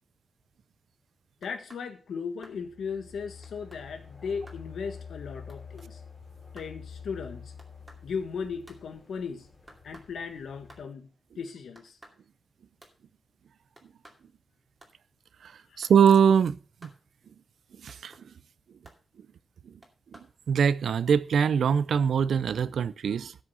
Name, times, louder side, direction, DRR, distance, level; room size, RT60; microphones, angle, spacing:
voice 1, 1.4-6.0 6.5-7.5 8.0-9.5 9.8-12.0 15.7-15.8, left 6 dB, 85° left, 1.5 m, -37 dB
sound 1, 1.4-1.9 2.4-2.6 3.4-3.8 4.5-4.6 5.5-5.9 6.6-6.8 7.6-8.0 8.7-8.8 9.7-10.1 10.7-10.9 11.8-12.2 12.8-13.0 13.8-14.2 14.8-14.9 15.8-16.2 16.8-17.0 17.9-18.3 18.9-19.0 19.8-20.3, right 1 dB, 10° right, 2.4 m, -54 dB
sound 2, 2.5-10.8, left 6 dB, 20° left, 4.2 m, -47 dB
voice 2, 15.8-16.6 16.8-16.9 17.8-18.1 19.7-19.8 20.1-20.2 20.5-23.4, right 7 dB, 80° right, 0.5 m, -22 dB
13.0 x 6.4 x 5.6 m
wide cardioid pair, 125°, 0 cm